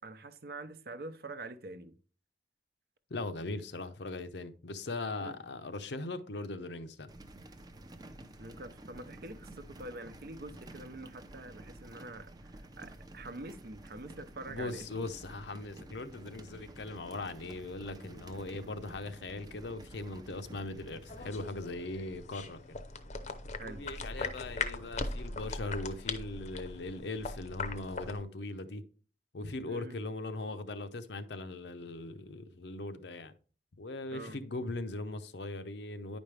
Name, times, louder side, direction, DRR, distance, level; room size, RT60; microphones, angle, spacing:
voice 1, 0.0-2.0 5.2-5.3 8.4-14.9 23.6-23.9 29.6-30.0 34.1-34.4, right 2 dB, 55° right, 0.7 m, -45 dB
voice 2, 3.1-7.1 14.5-22.8 23.6-28.8 29.3-33.3 33.8-36.2, left 2 dB, 75° left, 0.7 m, -40 dB
sound 1, 7.1-21.4, right 1 dB, 20° right, 0.6 m, -51 dB
sound 2, 21.1-28.2, left 3 dB, 40° left, 0.7 m, -40 dB
9.8 x 5.2 x 3.3 m
head